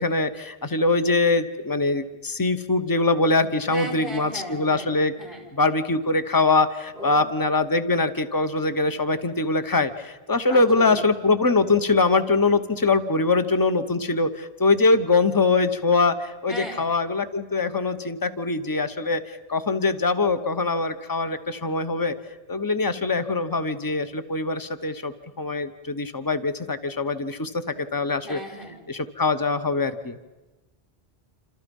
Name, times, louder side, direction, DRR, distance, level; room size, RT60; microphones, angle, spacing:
voice 1, 0.0-5.1 5.5-19.2 19.5-22.1 22.5-27.5 27.9-28.4 28.9-30.2, left 3 dB, 20° left, 10 dB, 1.0 m, -23 dB
voice 2, 3.7-4.9 5.2-5.5 6.9-7.3 10.5-11.0 16.5-16.9 28.2-28.8, equal, 55° left, 2 dB, 5.4 m, -36 dB
27.5 x 27.5 x 5.4 m, 1.1 s
omnidirectional pair, 1.1 m